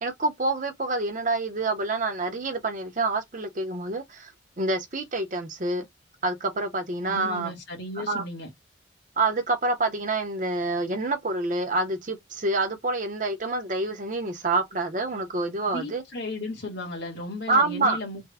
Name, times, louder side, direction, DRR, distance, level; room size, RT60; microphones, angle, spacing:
voice 1, 0.0-4.3 4.6-5.9 6.2-7.5 8.0-8.2 9.2-16.0 17.5-18.0, right 2 dB, 40° right, 0.6 m, -27 dB
voice 2, 7.1-8.5 15.7-18.2, left 2 dB, 60° left, 1.4 m, -35 dB
3.4 x 2.1 x 3.3 m
head